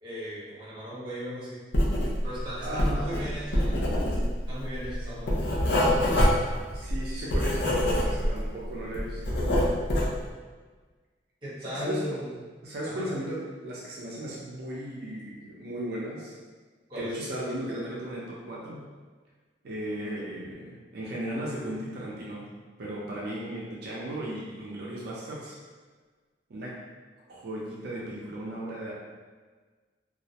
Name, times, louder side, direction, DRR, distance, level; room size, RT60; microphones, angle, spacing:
voice 1, 0.0-1.6 2.2-3.8 4.0-6.0 11.4-12.3 12.8-13.1 16.9-17.1, equal, 25° right, -9 dB, 0.9 m, -37 dB
Writing, 1.7-2.4 2.7-8.5 8.8-10.2, left 1 dB, 70° left, 0.5 m, -25 dB
voice 2, 2.6-3.3 6.7-9.5 11.6-12.2 12.6-16.4 17.0-18.8 19.6-22.5 22.8-25.6 26.5-26.8 27.3-28.9, right 1 dB, 60° right, -5 dB, 0.4 m, -36 dB
2.3 x 2.0 x 2.7 m, 1.4 s
head